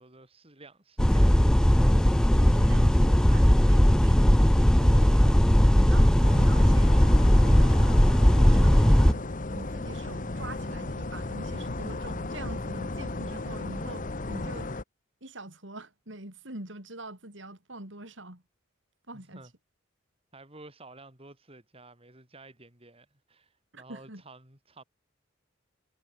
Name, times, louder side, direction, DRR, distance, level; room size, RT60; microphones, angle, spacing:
voice 1, 0.0-1.5 19.1-19.5 20.3-24.8, right 2 dB, 30° right, 4.4 m, -52 dB
sound 1, 1.0-9.1, equal, 5° left, 0.3 m, -19 dB
voice 2, 2.4-4.4 4.8-5.5 5.7-9.2 9.5-14.7 15.2-18.4 19.1-19.4 23.7-24.2, right 2 dB, 65° right, 5.2 m, -44 dB
sound 2, 6.2-14.8, left 2 dB, 40° left, 1.2 m, -35 dB
head